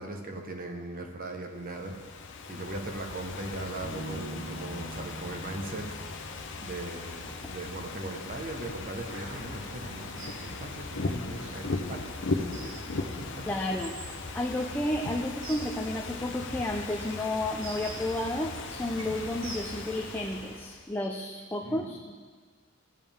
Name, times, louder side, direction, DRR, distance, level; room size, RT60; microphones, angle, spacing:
voice 1, 0.0-5.9 6.6-12.1 12.5-12.7 13.0-13.5 21.6-22.0, right 2 dB, 45° right, 3 dB, 1.1 m, -39 dB
Ocean / Fireworks, 1.6-20.9, left 3 dB, 60° left, 0.8 m, -38 dB
Bass guitar, 3.8-7.3, right 1 dB, 15° right, 2.3 m, -44 dB
sound 1, 8.9-20.5, right 2 dB, 65° right, 1.4 m, -47 dB
voice 2, 13.5-13.9 14.3-22.2, left 1 dB, 10° left, 0 dB, 0.5 m, -32 dB
15.0 x 7.3 x 3.6 m, 1.5 s
head